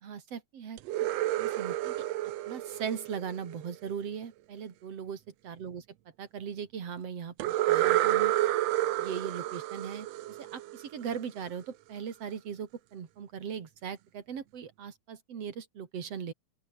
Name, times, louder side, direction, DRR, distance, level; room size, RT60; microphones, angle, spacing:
voice 1, 0.0-0.8 1.4-2.1 2.5-5.8 6.2-8.3 9.0-16.3, right 7 dB, 50° right, 3.2 m, -39 dB
sound 1, 0.8-3.7 7.4-11.1, right 15 dB, 70° right, 1.7 m, -29 dB
open air
omnidirectional pair, 3.7 m